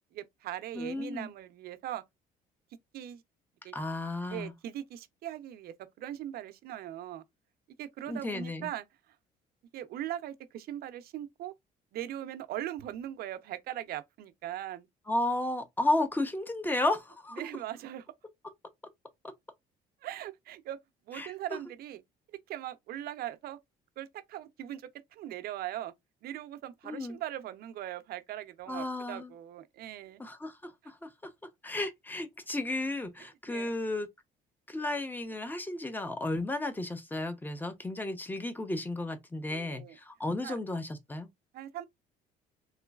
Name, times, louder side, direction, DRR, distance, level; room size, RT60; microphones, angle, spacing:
voice 1, 0.0-2.0 2.9-3.2 3.6-3.8 4.3-7.2 7.8-8.8 9.7-11.5 11.9-14.9 17.4-18.1 20.0-20.8 21.1-22.0 22.5-23.6 24.0-25.9 26.2-30.2 33.5-33.7 39.5-40.0 40.4-40.6 41.5-41.9, right 12 dB, 65° right, 0.6 m, -40 dB
voice 2, 0.7-1.3 3.7-4.5 8.1-8.7 15.1-17.4 21.2-21.3 26.9-27.2 28.7-29.3 30.2-31.1 31.6-34.1 34.7-41.3, left 2 dB, 10° left, 0.8 m, -33 dB
3.8 x 3.0 x 2.3 m
cardioid pair, 110°, 17 cm